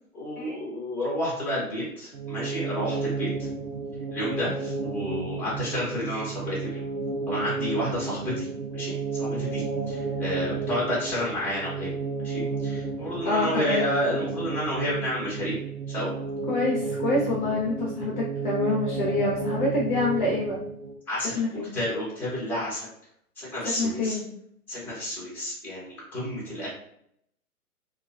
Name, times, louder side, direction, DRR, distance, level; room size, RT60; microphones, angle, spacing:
voice 1, 0.1-3.3 4.1-6.8 7.3-8.5 8.7-11.9 12.2-15.6 15.9-16.1 21.1-21.4 21.7-22.9 23.4-24.2 24.7-26.7, equal, 5° left, -8 dB, 0.7 m, -30 dB
sound 1, 2.1-20.9, right 4 dB, 65° right, 0.6 m, -32 dB
voice 2, 13.2-13.9 16.5-20.5 21.3-21.7 23.8-24.2, left 2 dB, 35° left, -5 dB, 0.5 m, -26 dB
2.3 x 2.2 x 2.3 m, 0.70 s
figure-of-eight pair, 120°, 45 cm